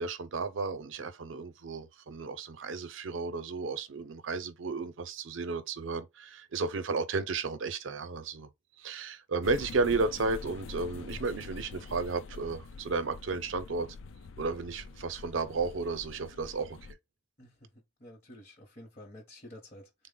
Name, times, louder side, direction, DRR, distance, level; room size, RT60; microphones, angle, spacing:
voice 1, 0.0-8.5 8.8-13.9 14.4-16.8, right 4 dB, 70° right, 0.5 m, -33 dB
sound 1, 9.4-16.9, left 4 dB, 70° left, 0.4 m, -45 dB
voice 2, 17.4-17.7 18.0-20.1, left 1 dB, 35° left, 0.8 m, -50 dB
3.8 x 2.0 x 3.7 m
head